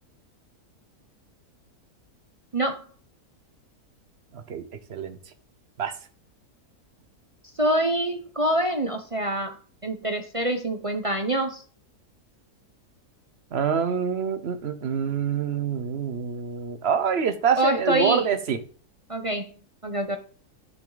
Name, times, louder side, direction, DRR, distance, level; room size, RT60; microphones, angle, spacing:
voice 1, 2.5-2.9 7.6-9.6 9.8-11.6 17.6-18.3 19.1-19.5 19.8-20.2, right 1 dB, 30° right, 6 dB, 0.6 m, -25 dB
voice 2, 4.3-5.2 5.8-5.9 13.5-18.6, right 7 dB, 45° right, 9 dB, 1.1 m, -26 dB
10.0 x 6.0 x 4.0 m, 0.41 s
omnidirectional pair, 1.6 m